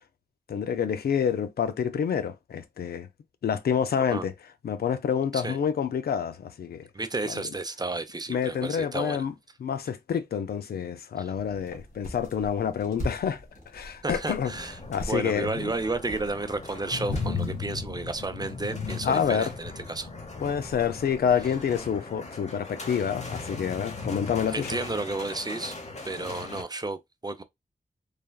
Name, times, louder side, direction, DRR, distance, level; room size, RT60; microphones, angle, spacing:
voice 1, 0.5-3.1 3.4-4.3 4.6-6.8 7.3-7.4 8.3-9.3 9.6-13.4 13.7-14.5 14.9-15.7 19.0-19.5 20.4-24.8, left 7 dB, 90° left, 0.4 m, -28 dB
voice 2, 6.9-9.2 11.2-11.3 14.0-14.8 15.1-20.1 24.5-25.8 26.0-27.4, right 2 dB, 25° right, 0.5 m, -32 dB
sound 1, 11.3-21.8, equal, 60° left, 1.6 m, -42 dB
sound 2, 14.3-26.6, left 4 dB, 45° left, 0.9 m, -38 dB
3.3 x 2.2 x 2.2 m
cardioid pair, 50°, 16 cm